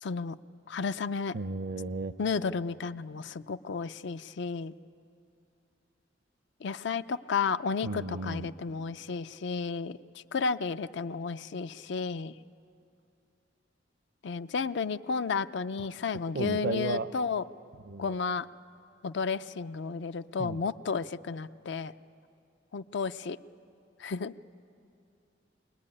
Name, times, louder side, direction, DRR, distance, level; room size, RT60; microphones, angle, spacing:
voice 1, 0.0-0.4 0.7-1.3 2.2-4.7 6.6-12.4 14.2-17.4 18.0-18.5 19.0-21.9 22.7-23.4 24.0-24.3, left 5 dB, 65° left, 13 dB, 0.5 m, -32 dB
voice 2, 1.3-2.1 7.8-8.5 15.8-15.9 16.3-17.1 17.9-18.2 20.4-20.6, right 3 dB, 60° right, 12 dB, 0.6 m, -34 dB
24.0 x 19.0 x 9.8 m, 2.6 s
head